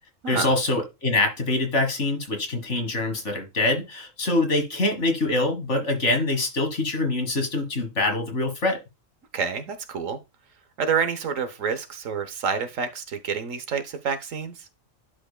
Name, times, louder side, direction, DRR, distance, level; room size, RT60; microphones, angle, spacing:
voice 1, 0.3-8.8, left 2 dB, 60° left, 1.9 m, -24 dB
voice 2, 9.3-10.2 10.8-14.7, right 6 dB, 75° right, 1.3 m, -28 dB
11.0 x 5.2 x 2.2 m
omnidirectional pair, 1.4 m